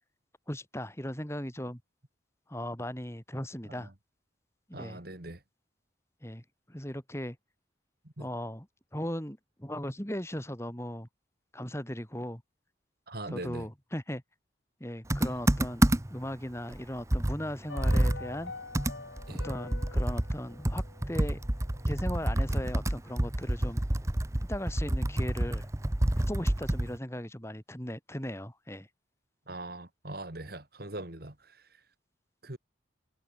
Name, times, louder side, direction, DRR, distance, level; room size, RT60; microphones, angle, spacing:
voice 1, 0.5-1.8 2.5-3.9 4.7-5.0 6.2-6.4 6.7-7.4 8.2-8.7 8.9-11.1 11.5-12.4 13.3-14.2 14.8-18.5 19.3-21.4 21.9-23.8 24.4-25.7 26.2-28.9, equal, 15° left, 4.4 m, -37 dB
voice 2, 4.7-5.4 8.0-8.3 13.1-13.7 15.2-15.4 19.3-19.5 29.5-31.8 32.4-32.6, right 2 dB, 50° right, 2.3 m, -42 dB
Computer keyboard, 15.1-16.3 16.7-16.8 17.1-27.0, right 1 dB, 15° right, 0.8 m, -28 dB
sound 1, 17.7-22.0 22.2-22.3, left 3 dB, 80° left, 2.4 m, -46 dB
head